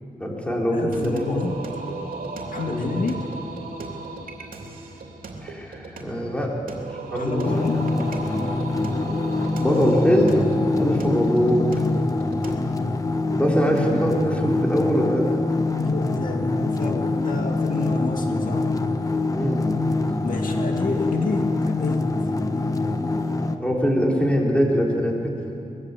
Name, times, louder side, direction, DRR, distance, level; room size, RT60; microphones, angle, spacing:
voice 1, 0.2-1.4 2.6-3.0 5.4-6.5 7.1-7.6 9.6-11.6 13.3-15.3 19.3-19.6 23.6-25.3, equal, 10° left, -2 dB, 3.9 m, -22 dB
voice 2, 0.7-1.7 2.5-3.2 7.1-7.8 15.8-18.7 20.2-22.1, left 3 dB, 70° left, 2 dB, 2.1 m, -29 dB
Singing, 0.9-12.6, right 3 dB, 80° right, 3.1 m, -36 dB
sound 1, 7.4-23.6, left 2 dB, 25° left, 1.1 m, -24 dB
23.5 x 21.0 x 8.4 m, 2.7 s
wide cardioid pair, 165°, 14 cm